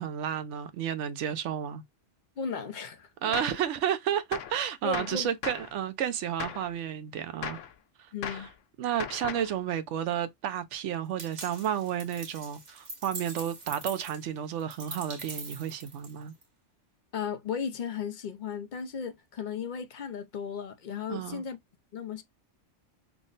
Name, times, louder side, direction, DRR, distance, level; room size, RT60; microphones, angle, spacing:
voice 1, 0.0-1.8 3.2-7.6 8.0-8.5 8.8-16.3 21.1-21.5, right 9 dB, 80° right, 0.9 m, -32 dB
voice 2, 2.4-3.4 4.8-5.3 8.1-8.5 17.1-21.6 21.9-22.2, left 6 dB, 55° left, 0.6 m, -35 dB
Gunshot gunfire, 3.3-3.6 4.3-4.6 4.9-5.7 6.4-6.7 7.4-7.7 8.2-8.5 9.0-9.5, left 8 dB, 90° left, 0.9 m, -37 dB
sound 1, 11.2-16.4, right 3 dB, 55° right, 1.5 m, -43 dB
3.6 x 2.0 x 3.8 m
omnidirectional pair, 1.2 m